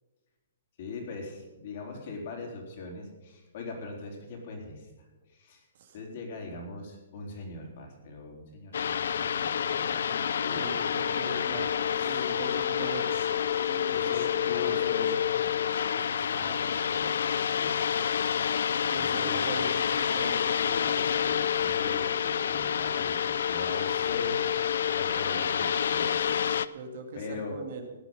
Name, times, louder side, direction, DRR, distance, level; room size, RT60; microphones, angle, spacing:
voice 1, 0.8-4.9 5.3-5.6 5.9-10.8 11.9-12.4 13.9-17.9 18.8-19.7 20.6-24.3 25.0-26.6 27.1-27.6, left 3 dB, 50° left, 0 dB, 4.1 m, -41 dB
sound 1, 8.7-26.7, left 8 dB, 70° left, 0.5 m, -28 dB
voice 2, 10.5-15.0 18.9-20.9 26.7-27.9, right 4 dB, 55° right, 4 dB, 2.4 m, -41 dB
17.0 x 10.0 x 5.7 m, 1.2 s
hypercardioid pair, 160°, 0 cm